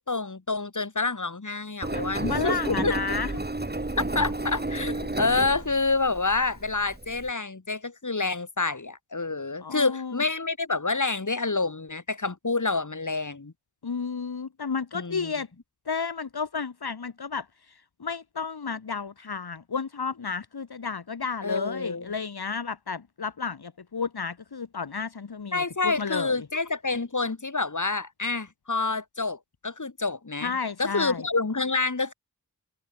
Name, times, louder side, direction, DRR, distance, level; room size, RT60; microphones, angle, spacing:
voice 1, 0.0-2.9 4.1-13.5 14.9-15.3 21.4-22.1 25.5-30.5 30.8-32.1, left 3 dB, 45° left, 4.6 m, -28 dB
Engine, 1.8-7.3, right 2 dB, 25° right, 3.0 m, -31 dB
voice 2, 1.9-3.3 9.6-10.2 13.8-15.5 15.9-26.5 30.4-31.2, left 5 dB, 65° left, 2.6 m, -32 dB
cardioid pair, 40°, 41 cm